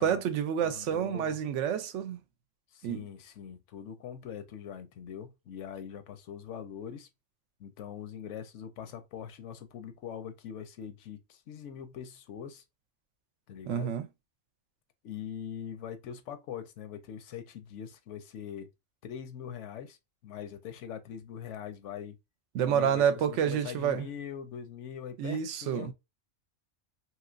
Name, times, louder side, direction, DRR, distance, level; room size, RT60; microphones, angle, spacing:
voice 1, 0.0-2.2 2.8-3.1 13.7-14.1 22.5-24.1 25.2-25.9, right 8 dB, 90° right, 0.9 m, -29 dB
voice 2, 0.6-1.4 2.7-7.1 7.6-12.6 13.5-13.9 15.0-18.7 19.0-22.2 22.6-25.9, left 8 dB, 80° left, 0.9 m, -42 dB
3.1 x 2.9 x 2.4 m
omnidirectional pair, 1.2 m